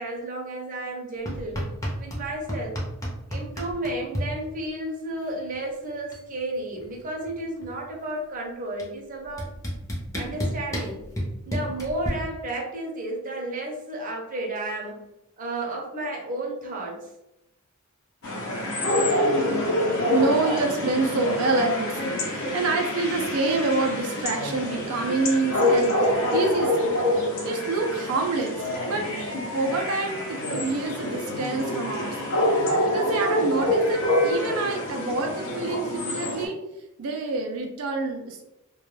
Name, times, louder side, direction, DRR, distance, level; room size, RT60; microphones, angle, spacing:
voice 1, 0.0-1.6 2.0-2.8 3.3-9.5 10.1-11.1 11.5-15.0 15.4-17.1, right 1 dB, 40° right, -1 dB, 0.6 m, -32 dB
sound 1, 1.3-2.2 2.5-4.3 5.5-5.6 5.9-6.3 6.6-7.9 8.8-8.9 9.4-12.1, equal, 15° left, 0.6 m, -30 dB
sound 2, 18.2-36.5, left 1 dB, 70° left, 0.7 m, -26 dB
voice 2, 19.8-27.0 27.4-28.6 28.9-29.1 29.5-36.6 37.0-38.5, right 3 dB, 85° right, 2 dB, 0.4 m, -27 dB
2.2 x 2.1 x 3.1 m, 0.90 s
head